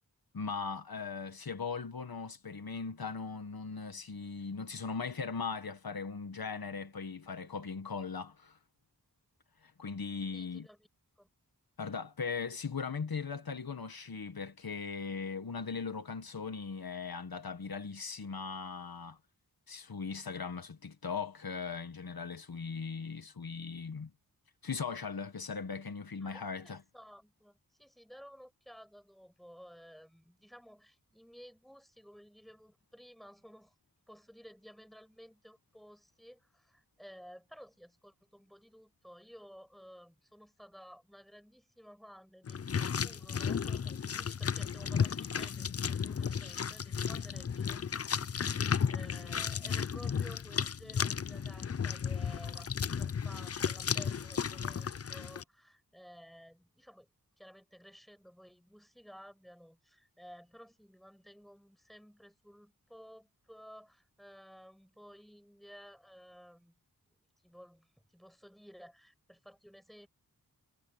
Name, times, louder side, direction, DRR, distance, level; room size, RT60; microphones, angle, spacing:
voice 1, 0.3-8.6 9.6-10.7 11.8-19.2 19.7-24.1 24.6-26.8, left 5 dB, 70° left, 1.8 m, -39 dB
voice 2, 10.3-10.9 11.2-11.3 26.2-33.7 34.1-48.6 48.9-57.1 57.4-66.8 67.4-70.1, equal, ahead, 6.2 m, -55 dB
sound 1, 42.5-55.4, left 7 dB, 40° left, 0.5 m, -34 dB
cardioid pair, 45°, 37 cm